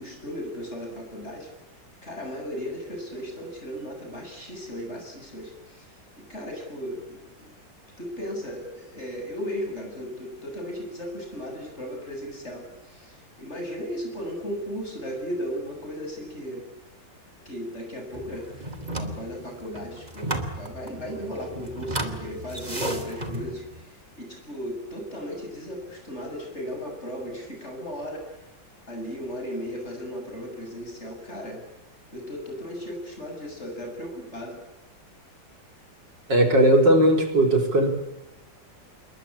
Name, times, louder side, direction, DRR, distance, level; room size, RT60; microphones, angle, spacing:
voice 1, 0.0-1.5 2.0-5.9 6.2-7.6 8.0-16.6 17.4-28.3 28.9-31.6 32.1-34.6, equal, 35° left, 3 dB, 8.0 m, -36 dB
sound 1, 18.1-23.8, right 1 dB, 20° right, 2.8 m, -34 dB
voice 2, 36.3-37.9, right 1 dB, 70° right, 4 dB, 4.9 m, -18 dB
28.5 x 22.5 x 8.7 m, 0.92 s
omnidirectional pair, 2.0 m